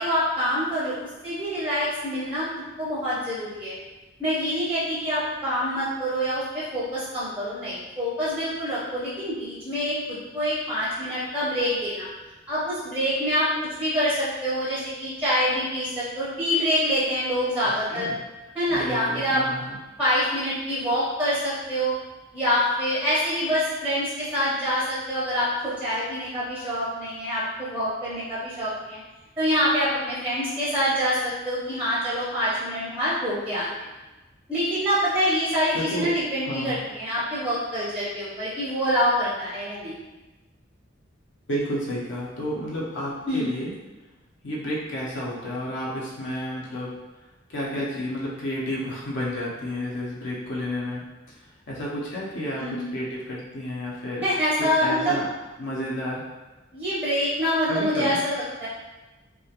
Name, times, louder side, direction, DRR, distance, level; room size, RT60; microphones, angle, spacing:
voice 1, 0.0-2.5 2.8-3.7 4.2-12.1 12.5-18.1 18.5-19.4 20.0-22.0 22.3-29.0 29.4-33.9 34.5-39.9 43.3-43.6 52.6-52.8 54.2-55.2 56.7-58.7, equal, 10° right, -9 dB, 0.5 m, -26 dB
voice 2, 18.7-19.8 35.7-36.1 36.4-36.8 41.5-43.7 44.4-46.9 47.5-51.0 51.7-52.7 52.9-54.2 54.6-55.3 55.6-56.3 57.7-58.2, equal, 60° left, -5 dB, 0.5 m, -31 dB
2.2 x 2.1 x 2.8 m, 1.1 s
head